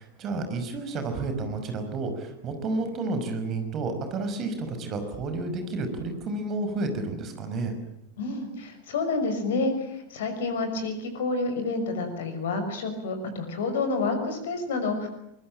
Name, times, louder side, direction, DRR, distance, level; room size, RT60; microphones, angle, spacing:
voice 1, 0.0-7.7, right 3 dB, 30° right, 7 dB, 5.6 m, -31 dB
voice 2, 8.2-15.1, left 3 dB, 60° left, 8 dB, 6.1 m, -29 dB
24.0 x 21.5 x 8.9 m, 0.84 s
figure-of-eight pair, 90°, 0 cm